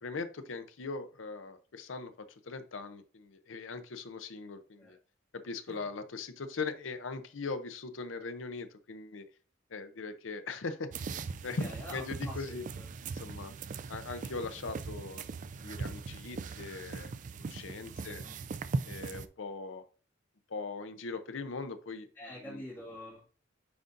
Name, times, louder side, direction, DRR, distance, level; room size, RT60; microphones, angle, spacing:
voice 1, 0.0-5.0 5.4-9.2 9.7-11.1 11.4-12.6 13.1-13.5 13.9-15.2 15.6-18.2 18.8-19.8 20.5-22.6, left 4 dB, 80° left, 10 dB, 0.6 m, -40 dB
sound 1, 10.9-19.3, right 4 dB, 40° right, 0.3 m, -40 dB
voice 2, 11.6-12.9 15.8-16.0 17.8-18.3 19.0-19.1 22.1-23.3, left 1 dB, 10° left, -9 dB, 2.0 m, -47 dB
9.4 x 3.8 x 2.6 m, 0.37 s
head